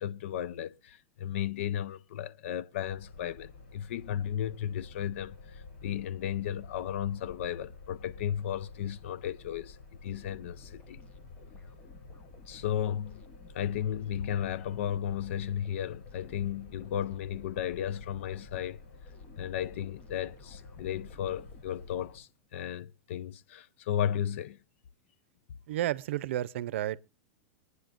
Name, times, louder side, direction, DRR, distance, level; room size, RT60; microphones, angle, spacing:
voice 1, 0.0-11.0 12.5-13.2 13.5-18.8 19.4-24.6, left 10 dB, 75° left, 0.6 m, -34 dB
sound 1, 2.8-22.2, left 3 dB, 60° left, 4.9 m, -51 dB
sound 2, 10.1-22.3, left 3 dB, 20° left, 1.3 m, -55 dB
voice 2, 25.7-27.0, right 13 dB, 70° right, 0.6 m, -31 dB
24.5 x 9.7 x 2.5 m
supercardioid pair, 160°, 7 cm